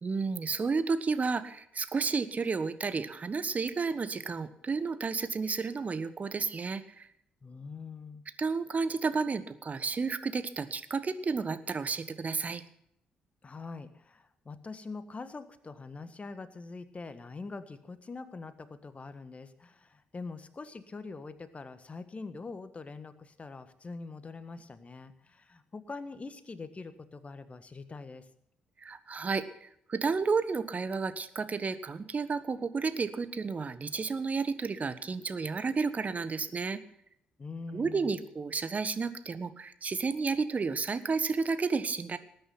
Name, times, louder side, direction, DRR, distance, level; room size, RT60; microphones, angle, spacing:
voice 1, 0.0-7.1 8.4-12.6 28.8-36.8 37.7-42.2, right 4 dB, 35° right, 13 dB, 1.3 m, -32 dB
voice 2, 7.4-8.2 13.4-28.3 37.4-38.2, left 4 dB, 30° left, 11 dB, 1.5 m, -44 dB
19.5 x 9.4 x 5.8 m, 0.73 s
figure-of-eight pair, 40°, 4 cm